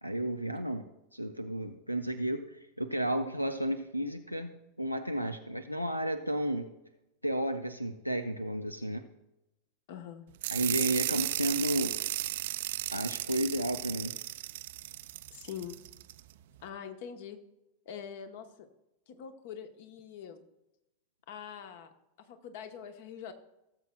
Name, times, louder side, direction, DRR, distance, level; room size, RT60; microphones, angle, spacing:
voice 1, 0.0-0.8 1.1-4.5 4.8-6.7 7.2-9.0 10.5-11.9 12.9-14.1, right 1 dB, 90° left, 10 dB, 0.5 m, -32 dB
voice 2, 9.9-10.2 15.3-15.8 16.6-17.4 17.9-18.7 19.1-20.4 21.3-21.9 22.2-23.3, left 8 dB, 50° left, 8 dB, 0.9 m, -44 dB
sound 1, 10.4-16.2, right 15 dB, 55° right, 0.3 m, -35 dB
17.5 x 7.4 x 2.2 m, 0.92 s
figure-of-eight pair, 90°, 0 cm